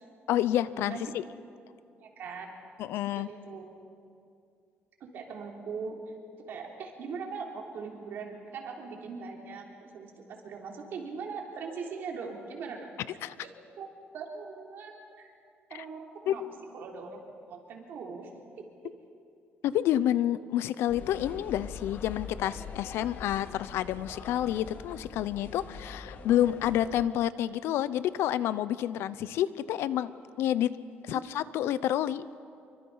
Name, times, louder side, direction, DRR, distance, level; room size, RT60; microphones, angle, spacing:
voice 1, 0.3-1.0 2.8-3.3 13.2-13.4 15.7-15.8 16.3-16.5 19.6-30.1 30.4-30.7 31.1-32.2, left 12 dB, 80° left, 16 dB, 0.7 m, -29 dB
voice 2, 2.0-2.5 2.9-3.7 5.0-5.9 6.5-12.9 13.4-13.9 14.1-15.3 15.7-16.4 16.7-17.2 17.5-18.3 18.6-18.9 31.1-31.2, right 5 dB, 55° right, 1 dB, 3.4 m, -41 dB
sound 1, 20.9-27.0, left 5 dB, 45° left, 1.6 m, -43 dB
26.5 x 24.5 x 5.6 m, 2.5 s
cardioid pair, 180°, 4 cm